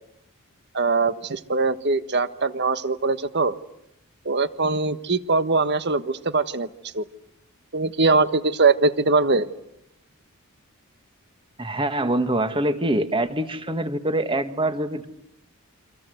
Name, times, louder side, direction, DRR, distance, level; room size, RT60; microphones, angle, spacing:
voice 1, 0.7-3.5 4.2-6.7 6.9-7.0 7.7-9.5, right 3 dB, 50° right, 12 dB, 1.3 m, -22 dB
voice 2, 11.6-15.1, right 1 dB, 25° right, 9 dB, 1.7 m, -24 dB
29.5 x 25.0 x 8.0 m, 0.79 s
head